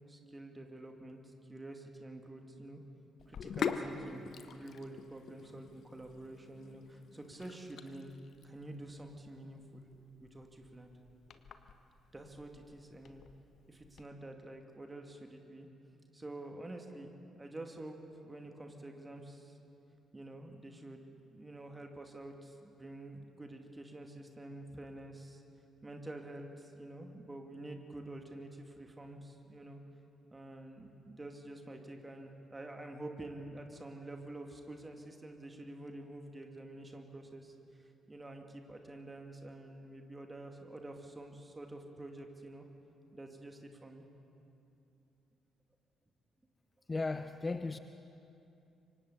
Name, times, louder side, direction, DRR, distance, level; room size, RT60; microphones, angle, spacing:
voice 1, 0.1-2.8 3.3-8.1 8.4-9.9 10.2-10.9 12.1-13.2 13.7-15.7 16.1-17.1 17.4-18.0 18.2-19.6 20.1-25.4 25.8-29.8 30.3-42.7 43.1-44.1, right 1 dB, 20° right, 2.5 m, -48 dB
Sink (filling or washing), 3.2-14.0, left 6 dB, 50° left, 0.9 m, -45 dB
voice 2, 46.9-47.8, left 3 dB, 25° left, 0.6 m, -35 dB
27.0 x 24.5 x 4.2 m
figure-of-eight pair, 40°, 0 cm